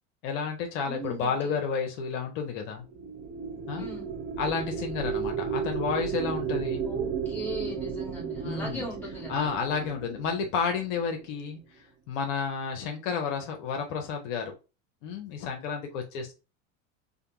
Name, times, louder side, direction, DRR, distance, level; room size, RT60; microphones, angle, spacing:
voice 1, 0.2-2.8 3.7-3.9 4.4-6.8 8.4-8.9 9.3-11.6 12.1-14.5 15.0-16.3, left 5 dB, 70° left, 3 dB, 0.8 m, -31 dB
voice 2, 0.8-1.5 3.8-4.1 6.8-10.0, equal, 5° left, -3 dB, 1.5 m, -39 dB
sound 1, 2.8-11.3, right 7 dB, 35° right, 0.9 m, -34 dB
2.4 x 2.2 x 3.0 m, 0.30 s
hypercardioid pair, 90°, 40 cm